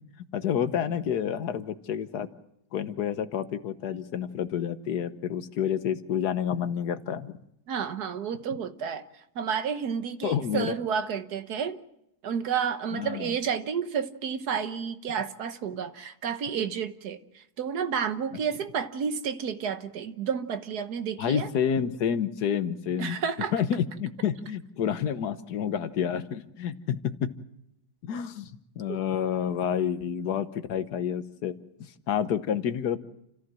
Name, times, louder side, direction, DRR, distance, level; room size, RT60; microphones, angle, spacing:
voice 1, 0.3-2.3 2.7-7.4 10.2-10.8 12.9-13.3 21.2-23.2 23.5-27.1 28.0-28.5 28.8-31.5 32.1-33.0, left 8 dB, 90° left, 11 dB, 1.6 m, -29 dB
voice 2, 7.7-9.0 9.4-11.8 12.2-21.5 23.0-23.5 28.9-29.0, right 7 dB, 80° right, 10 dB, 1.6 m, -31 dB
29.0 x 14.5 x 7.5 m, 0.82 s
omnidirectional pair, 1.6 m